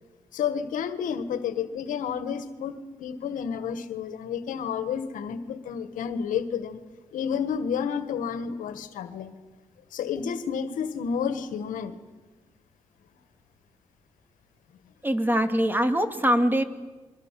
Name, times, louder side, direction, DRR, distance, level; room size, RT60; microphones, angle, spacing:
voice 1, 0.3-6.8 7.1-9.3 9.9-12.0, left 7 dB, 85° left, 11 dB, 1.7 m, -30 dB
voice 2, 15.0-16.6, equal, 15° right, 7 dB, 3.0 m, -23 dB
29.0 x 23.5 x 7.7 m, 1.3 s
supercardioid pair, 50°, 13 cm